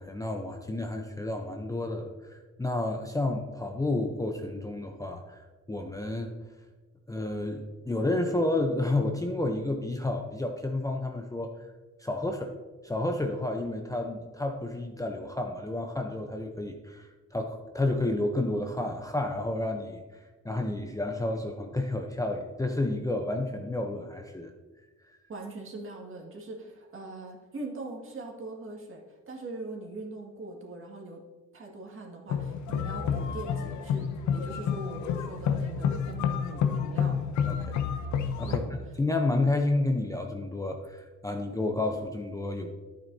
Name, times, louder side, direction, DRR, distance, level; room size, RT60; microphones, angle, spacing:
voice 1, 0.0-5.4 5.7-6.3 7.1-11.5 12.0-12.6 12.8-20.0 20.4-24.5 37.5-37.8 38.4-38.6 39.0-42.7, left 2 dB, 10° left, 3 dB, 0.7 m, -30 dB
voice 2, 25.3-31.2 31.5-34.1 34.3-37.2 38.4-38.7, right 2 dB, 45° right, 0 dB, 2.1 m, -41 dB
sound 1, 32.3-38.6, left 7 dB, 70° left, 0.8 m, -29 dB
10.5 x 8.9 x 2.7 m, 1.3 s
cardioid pair, 90°, 30 cm